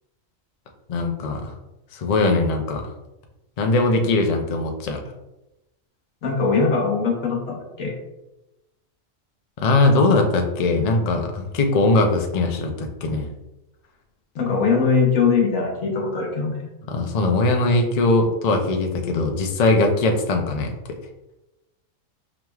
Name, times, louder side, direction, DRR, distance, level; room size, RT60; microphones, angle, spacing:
voice 1, 0.9-1.5 1.9-2.8 3.6-5.0 9.6-13.3 16.9-20.7, left 2 dB, 65° left, 3 dB, 0.4 m, -20 dB
voice 2, 6.2-7.9 14.3-16.6, left 5 dB, 80° left, 0 dB, 1.4 m, -21 dB
5.0 x 3.0 x 2.3 m, 0.96 s
omnidirectional pair, 1.4 m